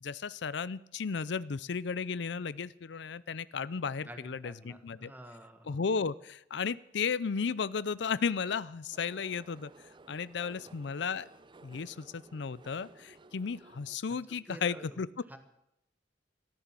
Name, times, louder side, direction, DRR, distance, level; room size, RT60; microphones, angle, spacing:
voice 1, 0.0-5.1 5.7-9.7 10.1-11.3 11.6-15.1, left 5 dB, 70° left, 18 dB, 0.5 m, -34 dB
voice 2, 4.0-5.8 10.4-10.7 14.5-15.0 15.3-15.4, right 1 dB, 10° right, 7 dB, 1.5 m, -49 dB
sound 1, 8.9-14.0, right 2 dB, 25° right, 0.6 m, -56 dB
14.0 x 13.5 x 7.5 m, 0.82 s
head